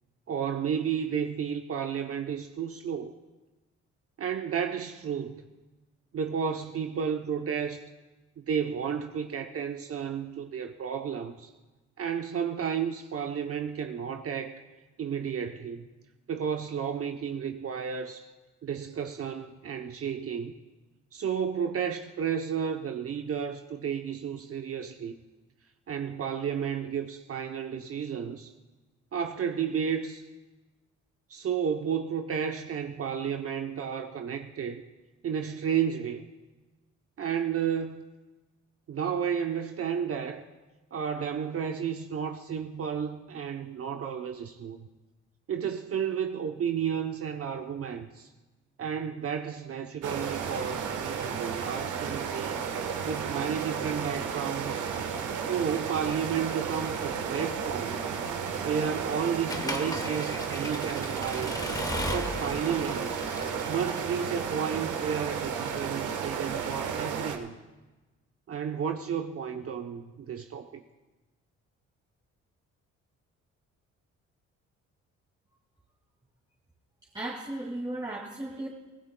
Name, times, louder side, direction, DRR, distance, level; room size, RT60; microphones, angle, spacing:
voice 1, 0.3-3.1 4.2-5.4 6.1-7.8 8.4-11.5 12.0-14.6 15.0-15.9 16.3-18.3 18.6-20.5 21.1-25.1 25.9-28.5 29.1-30.2 31.3-34.8 35.2-36.2 37.2-38.0 38.9-40.5 40.9-44.9 45.5-48.3 48.8-52.6 53.0-54.9 55.3-58.0 58.6-61.6 62.1-63.1 63.7-67.6 68.5-70.8, right 7 dB, 50° right, 5 dB, 0.8 m, -32 dB
sound 1, 50.0-67.4, right 6 dB, 75° right, 1.3 m, -33 dB
Accelerating revving vroom / Mechanisms, 59.5-64.4, left 2 dB, 10° left, 1.0 m, -37 dB
voice 2, 77.1-78.7, right 1 dB, 15° right, -3 dB, 2.1 m, -35 dB
24.5 x 16.0 x 2.3 m, 1.2 s
cardioid pair, 90°, 30 cm